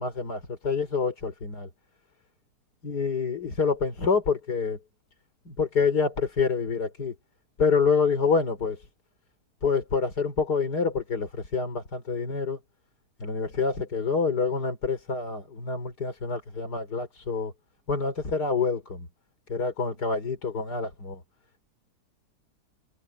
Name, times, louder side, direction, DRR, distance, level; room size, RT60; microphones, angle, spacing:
voice 1, 0.0-1.7 2.8-4.8 5.5-7.1 7.6-8.8 9.6-12.6 13.2-17.5 17.9-19.1 19.5-21.2, left 5 dB, 75° left, 4.7 m, -27 dB
omnidirectional pair, 1.7 m